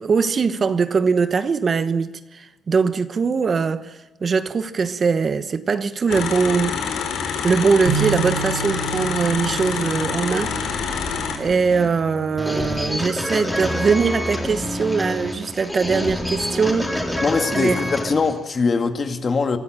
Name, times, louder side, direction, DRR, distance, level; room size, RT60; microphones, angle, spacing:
voice 1, 0.0-6.8 7.4-10.5 11.4-17.2 17.5-17.8, right 5 dB, 40° right, 1.1 m, -21 dB
sound 1, 6.1-11.4, left 6 dB, 80° left, 3.4 m, -26 dB
sound 2, 7.9-14.1, right 9 dB, 85° right, 3.0 m, -32 dB
sound 3, 10.4-18.4, left 1 dB, 10° left, 4.1 m, -28 dB
voice 2, 17.2-19.6, left 4 dB, 40° left, 2.0 m, -22 dB
25.0 x 14.0 x 7.4 m
cardioid pair, 90°, 0 cm